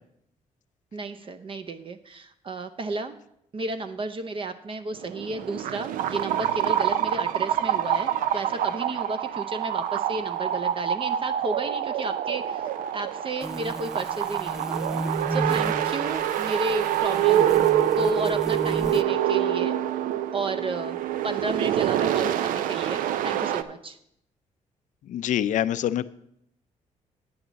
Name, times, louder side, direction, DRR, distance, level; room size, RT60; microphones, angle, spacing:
voice 1, 0.9-3.2 3.5-14.8 15.1-17.5 17.9-19.8 20.3-21.0 21.2-24.0, right 2 dB, 40° right, 10 dB, 0.6 m, -32 dB
sound 1, 4.9-23.6, right 11 dB, 90° right, 0.4 m, -26 dB
sound 2, 13.4-19.0, right 1 dB, 5° right, 0.4 m, -34 dB
voice 2, 25.1-26.1, left 11 dB, 70° left, 15 dB, 0.4 m, -25 dB
9.4 x 8.7 x 4.0 m, 0.76 s
cardioid pair, 85°, 14 cm